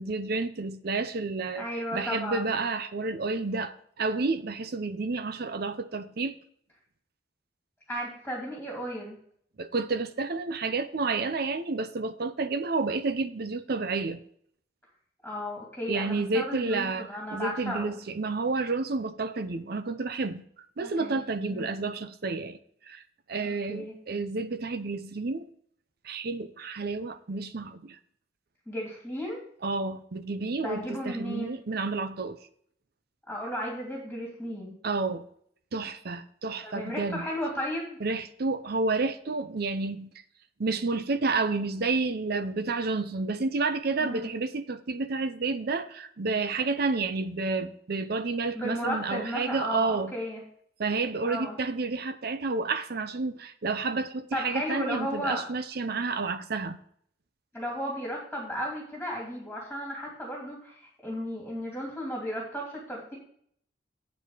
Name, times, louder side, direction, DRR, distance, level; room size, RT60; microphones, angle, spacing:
voice 1, 0.0-1.7 1.9-6.3 9.6-14.2 15.9-20.4 20.8-22.6 22.9-23.0 23.3-25.5 26.0-28.0 29.6-32.4 34.8-35.3 35.7-37.2 38.0-40.1 40.6-50.1 50.8-56.8, right 3 dB, 55° right, 0.6 m, -30 dB
voice 2, 1.6-2.5 7.9-9.2 15.2-18.0 20.8-21.2 21.5-21.7 23.4-24.0 28.7-29.4 30.6-31.5 33.3-34.7 36.6-38.0 44.0-44.3 48.5-50.4 51.2-51.5 54.3-55.4 57.5-63.2, equal, ahead, 2.5 m, -34 dB
8.2 x 7.0 x 4.8 m
head